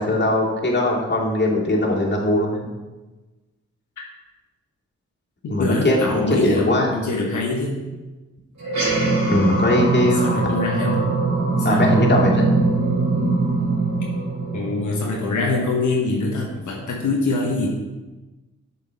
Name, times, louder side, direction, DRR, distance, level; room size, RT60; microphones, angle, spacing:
voice 1, 0.0-2.6 5.5-6.9 9.3-10.4 11.6-12.4, left 1 dB, 35° left, -3 dB, 2.2 m, -20 dB
voice 2, 5.4-7.8 10.0-11.1 11.5-11.9 14.5-17.7, left 3 dB, 90° left, -2 dB, 1.2 m, -24 dB
sound 1, 8.6-15.3, right 3 dB, 65° right, 2.9 m, -21 dB
7.5 x 5.9 x 4.2 m, 1.2 s
cardioid pair, 60°, 30 cm